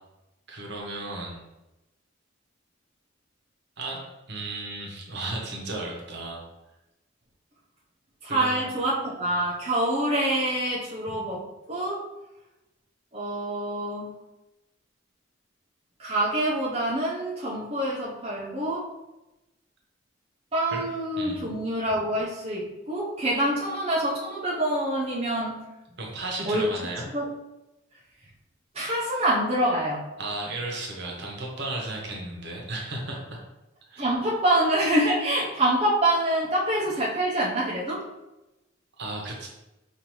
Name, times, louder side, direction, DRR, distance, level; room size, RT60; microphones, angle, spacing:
voice 1, 0.5-1.5 3.8-4.0 4.3-6.4 8.3-8.7 20.7-20.8 21.2-21.4 26.0-27.1 30.2-33.4 33.9-34.1 39.0-39.5, right 2 dB, 55° right, -1 dB, 1.0 m, -34 dB
voice 2, 8.2-12.1 13.1-14.1 16.0-18.9 20.5-25.6 26.4-26.7 27.1-27.3 28.7-30.0 34.0-38.0, right 1 dB, 30° right, -7 dB, 0.7 m, -26 dB
5.3 x 2.7 x 3.0 m, 0.98 s
head